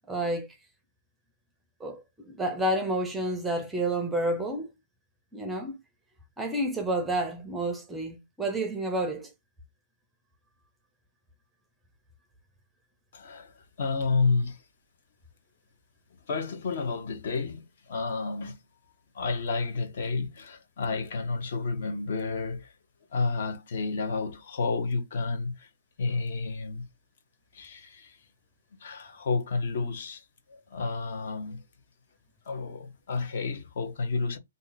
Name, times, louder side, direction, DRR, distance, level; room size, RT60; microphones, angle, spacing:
voice 1, 0.1-0.5 1.8-4.7 5.3-5.8 6.4-9.3, right 1 dB, 5° right, 0.6 m, -30 dB
voice 2, 13.1-14.6 16.3-18.6 19.1-22.7 23.1-25.7 26.0-26.9 27.5-28.2 28.8-31.6 32.4-34.4, left 4 dB, 55° left, 1.0 m, -31 dB
2.7 x 2.6 x 3.9 m
hypercardioid pair, 160°, 0 cm